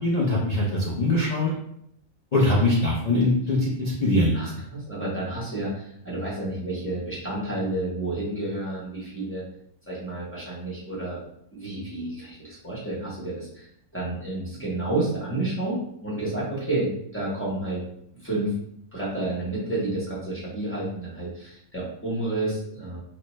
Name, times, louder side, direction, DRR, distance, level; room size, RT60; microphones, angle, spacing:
voice 1, 0.0-1.5 2.3-4.4, left 1 dB, 75° left, -7 dB, 0.3 m, -22 dB
voice 2, 4.3-9.4 9.9-11.2 11.5-13.7 13.9-17.8 18.2-18.5 18.9-23.0, right 2 dB, 10° left, -8 dB, 0.8 m, -30 dB
2.8 x 2.1 x 3.0 m, 0.73 s
omnidirectional pair, 1.5 m